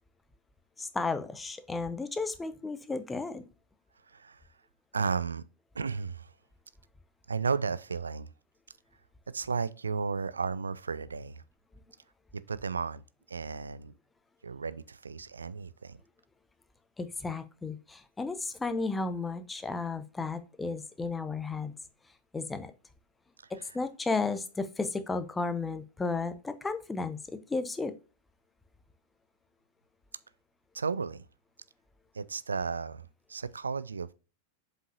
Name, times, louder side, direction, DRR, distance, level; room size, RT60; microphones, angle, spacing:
voice 1, 0.8-3.4 17.0-21.7 22.3-22.7 23.7-27.2 27.5-27.9, left 3 dB, 10° left, 0.7 m, -33 dB
voice 2, 4.1-4.4 4.9-5.4 5.7-6.3 7.3-8.3 9.3-11.4 12.5-13.0 13.3-13.9 14.4-16.0 30.7-31.3 32.1-34.1, right 5 dB, 75° right, 0.4 m, -34 dB
7.5 x 5.3 x 2.6 m
figure-of-eight pair, 90°, 0 cm